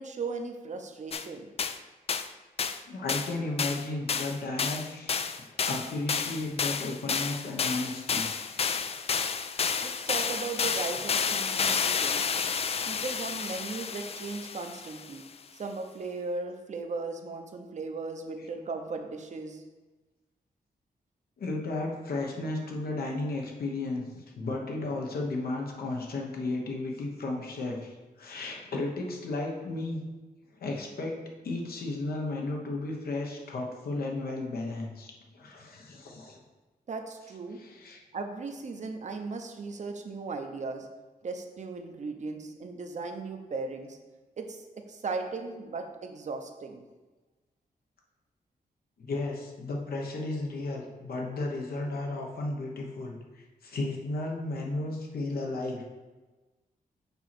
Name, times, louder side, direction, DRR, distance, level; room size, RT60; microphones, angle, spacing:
voice 1, 0.0-1.5 9.8-12.2 12.9-15.2 15.5-19.6 36.9-37.6 38.1-40.9 41.2-44.0 44.4-46.8, right 4 dB, 50° right, 5 dB, 0.8 m, -37 dB
sound 1, 1.1-1.3 1.6-1.8 2.1-2.3 2.6-2.8 3.1-3.3 3.6-15.1, left 6 dB, 40° left, 0.4 m, -30 dB
voice 2, 2.9-5.1 5.6-8.2 8.8-9.1 21.4-30.1 30.6-31.1 31.4-36.4 37.6-38.0 49.0-53.1 53.6-55.8, left 2 dB, 80° left, 0 dB, 1.2 m, -34 dB
7.0 x 3.0 x 6.0 m, 1.2 s
wide cardioid pair, 115°, 15 cm